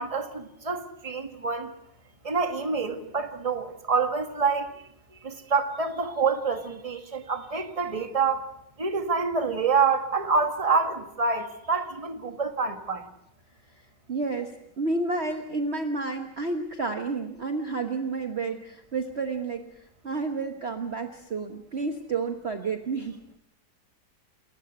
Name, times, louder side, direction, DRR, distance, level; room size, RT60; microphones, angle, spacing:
voice 1, 0.0-1.7 2.2-4.8 5.2-8.4 8.8-13.0, right 5 dB, 20° right, 1.7 m, -27 dB
voice 2, 14.1-19.7 20.0-23.2, right 3 dB, 40° right, 1.4 m, -30 dB
28.5 x 14.5 x 8.1 m
omnidirectional pair, 1.9 m